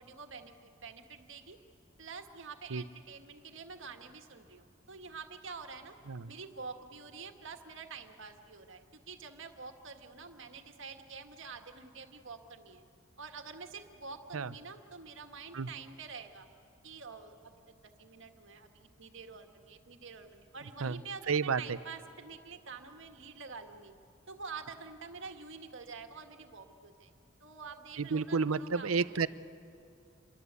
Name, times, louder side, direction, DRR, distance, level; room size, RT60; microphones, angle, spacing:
voice 1, 0.0-1.6 2.0-6.0 6.3-12.8 13.2-16.5 16.8-23.9 24.3-27.1 27.4-29.2, right 5 dB, 65° right, 5 dB, 1.8 m, -47 dB
voice 2, 21.3-21.8 28.0-29.3, right 5 dB, 90° right, 16 dB, 0.7 m, -31 dB
27.5 x 22.5 x 8.3 m, 2.5 s
head